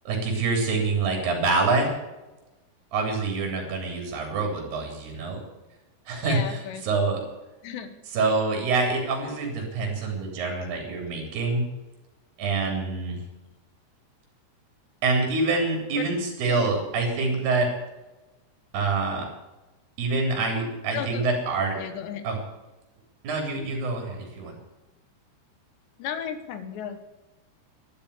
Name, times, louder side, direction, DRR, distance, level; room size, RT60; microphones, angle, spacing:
voice 1, 0.1-1.9 2.9-5.4 6.1-6.6 6.8-7.2 8.1-11.6 12.4-13.2 15.0-17.7 18.7-19.3 20.0-21.8 22.2-22.4 23.2-24.5, right 3 dB, 55° right, 1 dB, 5.3 m, -26 dB
voice 2, 6.2-6.9 7.6-7.9 16.4-16.7 20.9-21.3 21.8-22.2 26.0-27.0, left 8 dB, 70° left, 9 dB, 3.1 m, -34 dB
12.5 x 12.0 x 8.2 m, 1.1 s
omnidirectional pair, 5.7 m